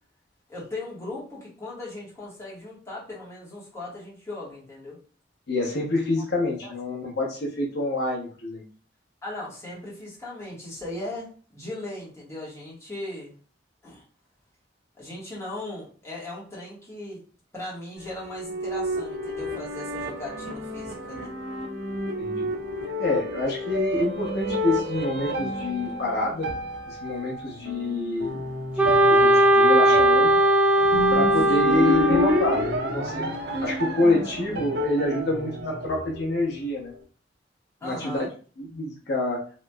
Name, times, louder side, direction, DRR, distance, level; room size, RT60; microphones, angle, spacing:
voice 1, 0.5-5.0 6.2-6.3 6.6-6.7 9.2-13.3 13.8-14.0 15.0-17.2 17.5-21.3 31.4-31.6 37.8-38.3, left 1 dB, 15° left, -6 dB, 1.3 m, -38 dB
voice 2, 5.5-8.6 22.2-22.5 23.0-26.5 26.9-28.4 28.8-30.3 31.1-33.3 33.6-36.9 37.8-38.3 38.6-39.4, left 2 dB, 65° left, -1 dB, 0.7 m, -27 dB
sound 1, 18.0-36.6, equal, 65° right, 0.5 m, -30 dB
Wind instrument woodwind instrument, 28.8-32.8, right 1 dB, 5° right, 0.3 m, -19 dB
3.0 x 2.9 x 2.2 m, 0.40 s
head